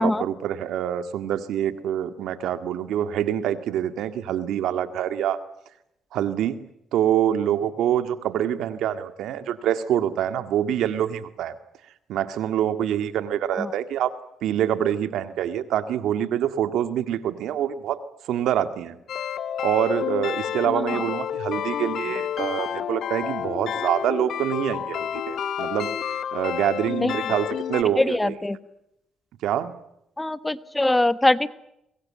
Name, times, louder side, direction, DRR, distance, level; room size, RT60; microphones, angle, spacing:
voice 1, 0.0-5.4 6.1-6.6 6.9-11.5 12.1-14.1 14.4-18.0 18.3-19.0 19.6-25.9 26.3-28.3 29.4-29.7, right 10 dB, 80° right, 10 dB, 1.9 m, -25 dB
sound 1, 19.1-27.8, left 9 dB, 65° left, 1.2 m, -29 dB
voice 2, 28.0-28.6 30.2-31.5, left 1 dB, 10° left, 14 dB, 1.3 m, -23 dB
25.0 x 21.5 x 8.7 m, 0.82 s
cardioid pair, 90°, 0 cm